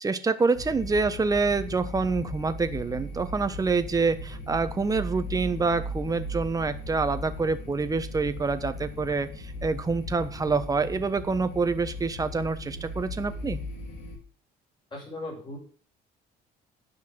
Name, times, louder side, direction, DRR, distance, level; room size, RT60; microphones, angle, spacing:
voice 1, 0.0-13.6, right 4 dB, 20° right, 10 dB, 1.1 m, -27 dB
sound 1, 0.5-14.2, left 1 dB, 80° left, 3.7 m, -37 dB
voice 2, 14.9-15.6, left 2 dB, 25° left, -3 dB, 6.5 m, -37 dB
10.5 x 5.9 x 7.5 m, 0.42 s
cardioid pair, 110°, 17 cm